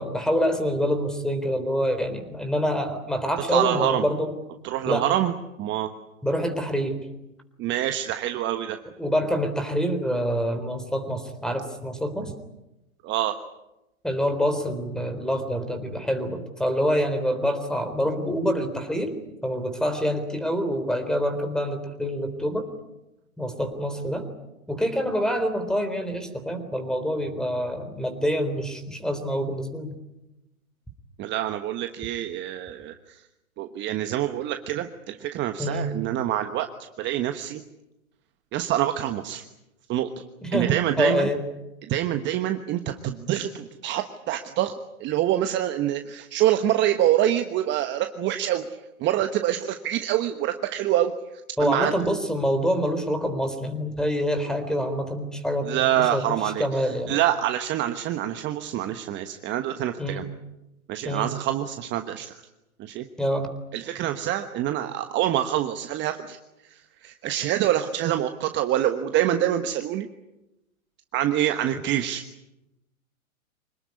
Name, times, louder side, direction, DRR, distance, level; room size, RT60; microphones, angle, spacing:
voice 1, 0.0-4.3 4.9-5.1 6.2-7.0 9.0-12.3 14.0-19.1 19.4-22.7 23.4-24.3 24.7-29.9 35.6-35.9 40.4-41.4 51.6-55.7 56.0-57.1 60.0-60.3 61.1-61.3 63.2-63.5, equal, ahead, 8 dB, 3.8 m, -26 dB
voice 2, 3.5-4.0 4.6-5.3 5.6-5.9 7.6-8.8 13.0-13.3 31.2-33.2 33.6-36.7 37.0-37.6 38.5-39.4 39.9-40.1 40.5-41.3 41.8-44.7 45.0-51.9 55.7-56.8 57.1-60.3 60.9-62.4 62.8-63.0 63.7-66.4 66.6-70.1 71.1-72.2, right 12 dB, 25° right, 7 dB, 1.3 m, -26 dB
26.0 x 19.5 x 9.7 m, 0.94 s
hypercardioid pair, 125°, 43 cm